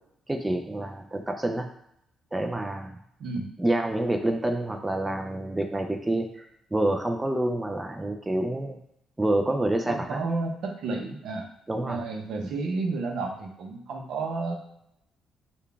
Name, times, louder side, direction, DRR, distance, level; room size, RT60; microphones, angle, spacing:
voice 1, 0.3-1.7 2.3-3.0 3.6-6.5 6.7-8.8 9.2-10.2 11.7-12.0 12.4-12.5, right 1 dB, 15° right, 4 dB, 0.4 m, -27 dB
voice 2, 3.2-3.5 9.9-11.5 11.8-14.6, right 3 dB, 75° right, 2 dB, 0.6 m, -31 dB
3.8 x 2.2 x 3.4 m, 0.77 s
cardioid pair, 90°, 0 cm